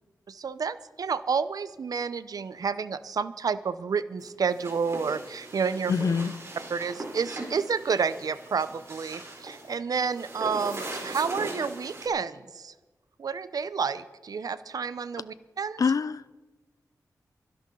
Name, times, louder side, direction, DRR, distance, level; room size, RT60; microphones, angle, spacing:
voice 1, 0.3-5.9 6.7-12.7 13.2-15.8, right 5 dB, 70° right, 0.7 m, -30 dB
sound 1, 4.2-12.1, right 2 dB, 40° right, 3.9 m, -40 dB
voice 2, 5.9-6.3 15.8-16.4, left 5 dB, 60° left, 0.6 m, -25 dB
24.5 x 11.0 x 3.9 m
wide cardioid pair, 85°, 7 cm